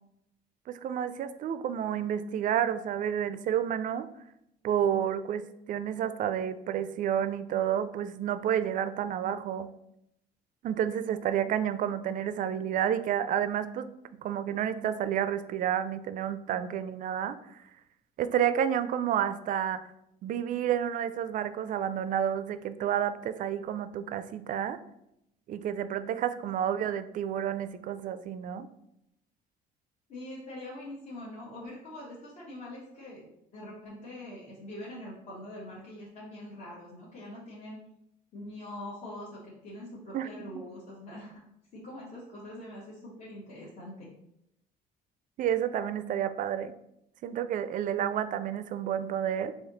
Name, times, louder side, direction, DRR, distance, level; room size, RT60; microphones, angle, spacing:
voice 1, 0.7-4.1 4.6-9.7 10.6-13.9 14.2-17.4 18.2-19.8 20.2-24.8 25.5-28.7 40.1-40.3 45.4-46.7 47.2-49.5, right 9 dB, 50° right, 12 dB, 0.4 m, -30 dB
voice 2, 30.1-37.8 38.3-41.4 41.7-44.1, left 1 dB, 45° left, -6 dB, 1.2 m, -43 dB
4.1 x 2.8 x 3.9 m, 0.81 s
cardioid pair, 110°, 17 cm